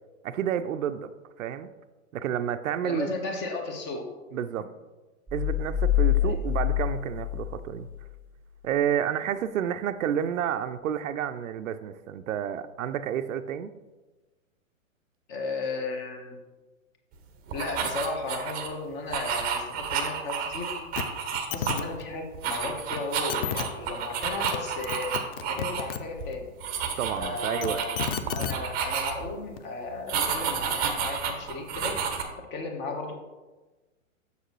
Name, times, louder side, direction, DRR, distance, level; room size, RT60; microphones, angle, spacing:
voice 1, 0.2-1.1 1.4-1.7 2.1-3.1 4.3-4.7 5.3-7.9 8.6-13.7 27.0-27.8, right 9 dB, 75° right, 11 dB, 0.5 m, -30 dB
voice 2, 2.8-4.1 4.5-4.6 6.2-6.4 15.3-16.4 17.5-20.7 21.5-25.1 25.4-26.5 27.2-28.0 28.3-32.0 32.5-33.1, left 3 dB, 25° left, 3 dB, 1.2 m, -35 dB
sound 1, 5.3-8.1, left 12 dB, 5° left, 1.5 m, -26 dB
sound 2, 17.5-18.7 19.1-22.0 22.3-25.8 26.1-26.3 26.6-29.4 30.1-32.2, right 7 dB, 20° right, 0.8 m, -31 dB
sound 3, 21.0-21.1 21.3-21.8 22.9-23.0 23.3-23.6 24.2-24.6 24.8-26.0 27.4-28.5 29.6-29.7, left 8 dB, 45° left, 0.6 m, -31 dB
6.9 x 6.6 x 3.1 m, 1.2 s
hypercardioid pair, 120°, 40 cm